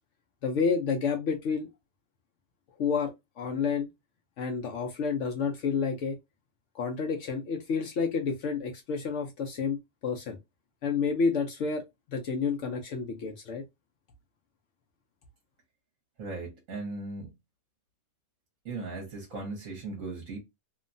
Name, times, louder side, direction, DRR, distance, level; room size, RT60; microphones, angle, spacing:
voice 1, 0.4-1.7 2.8-3.9 4.4-6.2 6.7-10.4 10.8-11.8 12.1-13.6, left 5 dB, 75° left, 0.7 m, -30 dB
voice 2, 16.2-17.3 18.6-20.4, right 3 dB, 55° right, 1.1 m, -37 dB
2.9 x 2.2 x 2.5 m
omnidirectional pair, 1.8 m